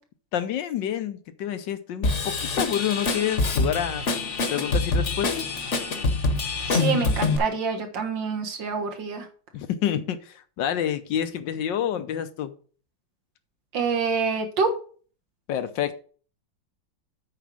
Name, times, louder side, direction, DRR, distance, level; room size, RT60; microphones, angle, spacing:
voice 1, 0.3-4.0 4.5-5.4 9.5-12.5 15.5-16.0, left 10 dB, 70° left, 1.4 m, -28 dB
Drum kit / Drum, 2.0-7.4, left 3 dB, 40° left, 1.3 m, -25 dB
voice 2, 6.7-9.3 13.7-14.7, right 5 dB, 70° right, 2.1 m, -26 dB
8.3 x 4.8 x 6.2 m
omnidirectional pair, 2.1 m